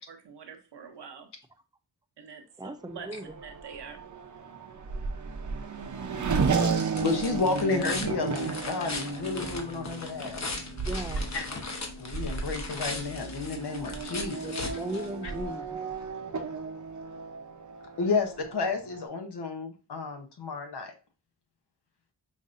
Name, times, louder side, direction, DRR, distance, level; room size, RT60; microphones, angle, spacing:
voice 1, 0.1-1.3 2.2-3.1 3.4-4.0, right 6 dB, 90° right, 5 dB, 0.9 m, -45 dB
voice 2, 2.6-3.3 10.8-11.3 14.3-16.1, right 1 dB, 10° right, 10 dB, 0.4 m, -38 dB
Race car auto racing / Accelerating revving vroom, 2.8-19.1, right 5 dB, 45° right, 0.7 m, -34 dB
sound 1, 6.1-15.6, left 3 dB, 45° left, 1.0 m, -39 dB
voice 3, 7.0-10.4 11.3-11.5 12.0-14.5 18.0-20.9, left 4 dB, 75° left, 5 dB, 1.0 m, -31 dB
5.2 x 2.6 x 2.6 m, 0.33 s
cardioid pair, 60°, 40 cm